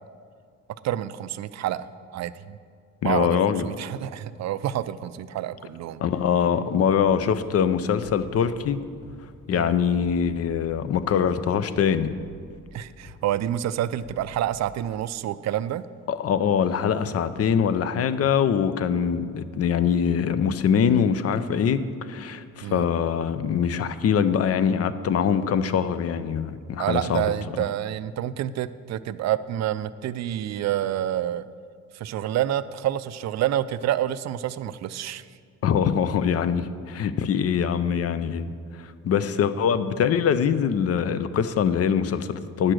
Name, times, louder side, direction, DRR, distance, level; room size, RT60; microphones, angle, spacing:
voice 1, 0.8-1.9 2.1-2.6 3.0-6.0 9.5-9.8 12.7-15.8 22.6-22.9 26.8-31.4 31.9-35.2, right 12 dB, 60° right, 14 dB, 0.5 m, -28 dB
voice 2, 3.0-3.6 6.0-8.8 9.5-12.1 16.1-27.3 35.6-38.5 39.0-42.7, left 7 dB, 55° left, 13 dB, 0.6 m, -23 dB
sound 1, 8.0-8.4 9.0-9.3 10.0-10.4 11.0-11.3 12.0-12.4 13.0-13.3 14.0-14.4, left 1 dB, 75° left, 2.0 m, -45 dB
10.0 x 6.5 x 6.1 m, 2.1 s
cardioid pair, 90°, 30 cm